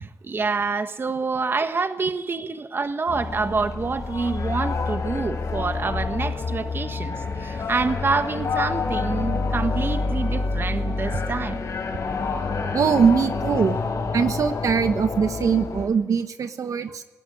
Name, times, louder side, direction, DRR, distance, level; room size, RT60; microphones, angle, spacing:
voice 1, 0.2-7.1 7.4-11.6, right 4 dB, 40° right, 9 dB, 1.4 m, -27 dB
sound 1, 3.1-15.9, left 4 dB, 70° left, 4.3 m, -27 dB
voice 2, 12.7-13.8 14.1-17.0, right 6 dB, 75° right, 9 dB, 1.4 m, -22 dB
21.0 x 17.5 x 10.0 m, 1.0 s
wide cardioid pair, 105°, 6 cm